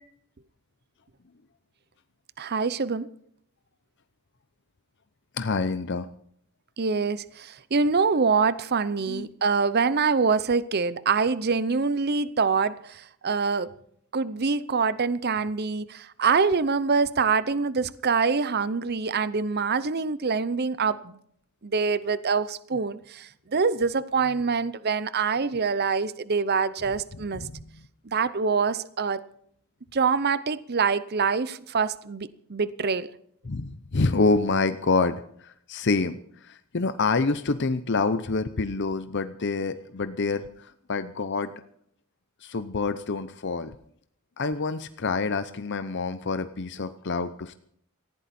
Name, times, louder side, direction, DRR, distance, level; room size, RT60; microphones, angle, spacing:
voice 1, 2.4-3.1 6.8-13.7 14.1-21.2 21.6-27.4 28.1-29.2 29.9-33.1, right 5 dB, 45° right, 0.7 m, -25 dB
voice 2, 5.3-6.1 9.1-9.3 27.3-27.6 33.4-41.5 42.4-43.7 44.4-47.5, left 3 dB, 50° left, 0.7 m, -27 dB
19.0 x 15.5 x 4.3 m
head